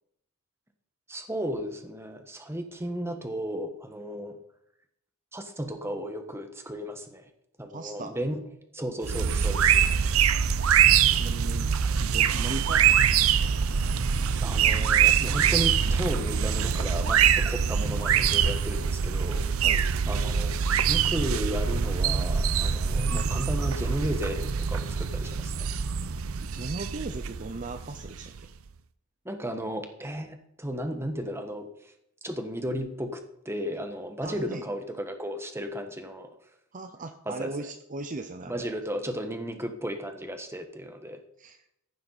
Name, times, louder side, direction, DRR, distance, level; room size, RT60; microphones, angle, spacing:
voice 1, 1.1-4.4 5.3-7.3 7.6-8.4 8.7-9.8 14.4-19.5 20.1-20.5 20.9-25.7 29.2-31.7 32.2-36.3 37.3-37.5 38.5-41.2, equal, 10° right, 6 dB, 1.4 m, -34 dB
voice 2, 7.7-8.2 11.1-13.5 19.6-19.8 26.5-28.3 34.2-34.7 36.7-38.7 41.4-41.7, right 2 dB, 35° right, 8 dB, 0.7 m, -38 dB
sound 1, 9.0-28.5, right 7 dB, 75° right, 0.7 m, -24 dB
15.0 x 11.0 x 4.2 m, 0.77 s
head